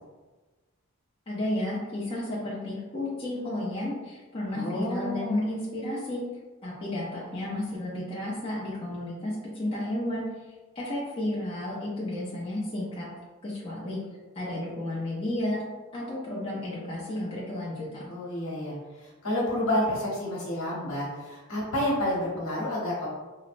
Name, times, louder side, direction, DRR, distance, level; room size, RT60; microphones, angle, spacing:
voice 1, 1.3-6.2 6.6-10.2 10.8-13.1 13.4-14.0 14.4-15.6 15.9-18.1, left 1 dB, 25° left, -6 dB, 0.4 m, -32 dB
voice 2, 4.5-5.5 18.1-23.1, left 1 dB, 75° left, -6 dB, 1.0 m, -30 dB
3.0 x 2.0 x 2.5 m, 1.2 s
head